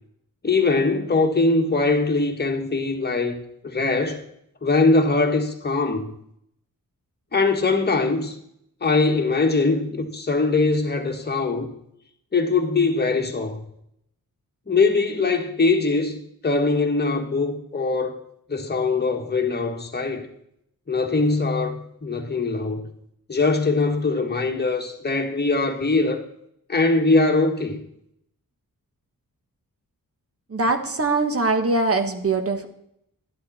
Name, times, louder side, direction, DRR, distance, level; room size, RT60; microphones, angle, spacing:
voice 1, 0.4-4.2 4.6-6.1 7.3-8.3 8.8-11.7 12.3-13.6 14.7-18.2 18.5-20.3 20.9-22.9 23.3-26.2 26.7-27.8, left 3 dB, 30° left, 1.6 m, -22 dB
voice 2, 30.5-32.7, right 3 dB, 40° right, 1.3 m, -22 dB
11.5 x 11.5 x 4.2 m
wide cardioid pair, 120°, 35 cm